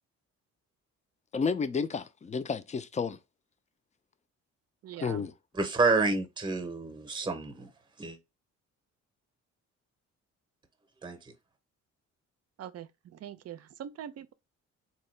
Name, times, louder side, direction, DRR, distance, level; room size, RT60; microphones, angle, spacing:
voice 1, 1.3-3.2 5.0-5.3, left 5 dB, 25° left, 0.4 m, -31 dB
voice 2, 4.8-5.2 12.6-14.3, right 10 dB, 55° right, 0.5 m, -43 dB
voice 3, 5.6-7.7 8.0-8.2 11.0-11.2, right 3 dB, 15° right, 0.8 m, -28 dB
3.6 x 2.8 x 3.2 m
cardioid pair, 90°, 30 cm